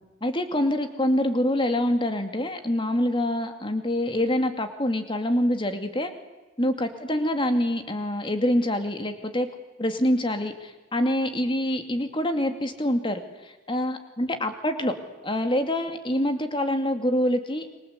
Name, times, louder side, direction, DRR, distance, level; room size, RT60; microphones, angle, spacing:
voice 1, 0.2-6.1 6.6-9.5 9.8-14.9 15.2-17.7, left 1 dB, 25° left, 7 dB, 2.4 m, -25 dB
29.5 x 23.5 x 8.3 m, 1.2 s
head